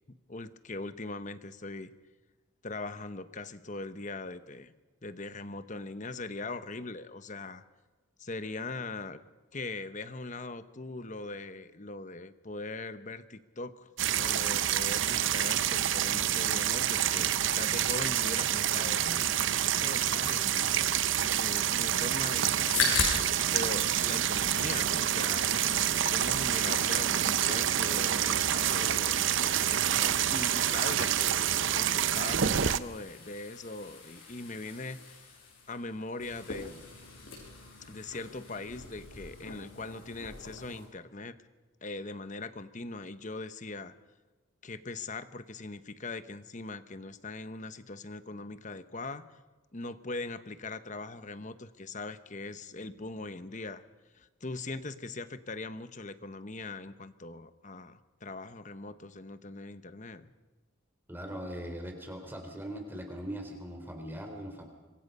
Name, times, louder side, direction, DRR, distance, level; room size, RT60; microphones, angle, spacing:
voice 1, 0.1-1.9 2.6-4.7 5.0-7.6 8.2-9.2 9.5-25.6 26.1-31.4 31.7-35.4 35.7-36.9 37.9-41.4 41.8-43.9 44.6-49.3 49.7-53.8 54.1-60.3, left 3 dB, 35° left, 12 dB, 1.0 m, -41 dB
sound 1, 14.0-32.8, right 10 dB, 60° right, 0.6 m, -28 dB
sound 2, 22.7-23.7 24.0-25.0 25.3-40.9, left 4 dB, 65° left, 6.3 m, -39 dB
voice 2, 61.1-64.7, equal, 10° right, 4 dB, 3.7 m, -40 dB
26.0 x 23.0 x 5.5 m, 1.3 s
head